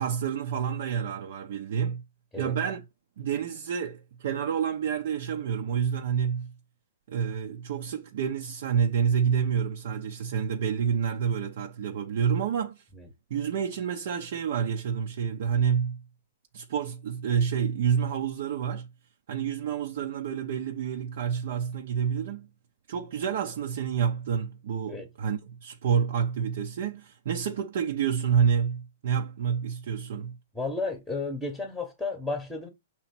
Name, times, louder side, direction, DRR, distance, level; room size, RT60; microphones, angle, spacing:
voice 1, 0.0-2.0 2.4-2.8 3.2-6.5 7.1-12.8 13.3-16.0 16.5-18.9 19.3-22.5 22.9-30.4, right 7 dB, 55° right, 0.7 m, -28 dB
voice 2, 30.5-32.7, left 3 dB, ahead, 1.0 m, -33 dB
6.3 x 3.0 x 5.8 m
hypercardioid pair, 155°, 0 cm